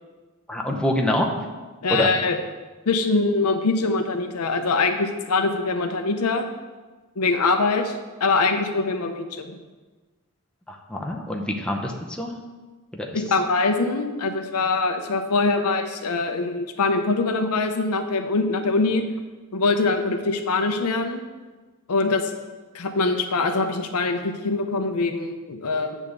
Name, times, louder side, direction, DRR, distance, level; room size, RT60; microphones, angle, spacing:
voice 1, 0.5-1.3 1.9-2.1 10.7-12.4 12.9-13.2, equal, 5° left, 0 dB, 0.7 m, -26 dB
voice 2, 1.8-2.4 2.9-6.4 7.2-9.6 13.1-19.0 19.5-21.2 21.9-22.2 22.7-26.0, left 3 dB, 85° left, 6 dB, 0.7 m, -23 dB
8.5 x 3.6 x 6.6 m, 1.3 s
head